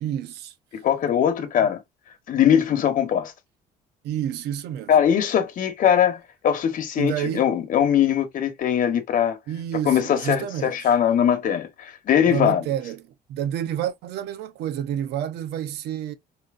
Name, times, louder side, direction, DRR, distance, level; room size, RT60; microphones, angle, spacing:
voice 1, 0.0-0.5 4.0-4.9 7.0-7.4 9.5-10.9 12.2-16.1, right 10 dB, 75° right, 0.7 m, -29 dB
voice 2, 0.7-1.8 2.3-3.3 4.9-9.4 9.9-12.6, left 9 dB, 50° left, 1.0 m, -21 dB
4.4 x 2.8 x 2.4 m
cardioid pair, 110°, 17 cm